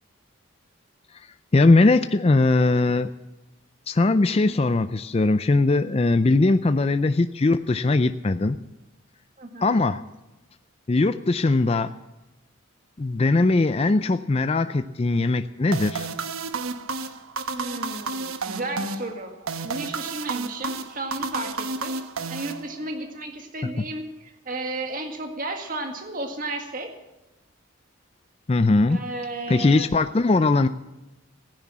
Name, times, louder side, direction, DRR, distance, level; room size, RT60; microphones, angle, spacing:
voice 1, 1.5-3.1 3.9-8.6 9.6-10.0 10.9-11.9 13.0-16.1 23.8-23.9 28.5-29.0 29.5-30.7, left 3 dB, 30° left, 11 dB, 0.4 m, -20 dB
voice 2, 9.4-9.8 17.5-19.3 19.6-22.0 22.3-26.9 28.9-29.9, right 2 dB, 40° right, 4 dB, 1.9 m, -33 dB
sound 1, 15.7-23.1, right 4 dB, 85° right, 1.1 m, -31 dB
16.0 x 10.0 x 7.4 m, 1.0 s
head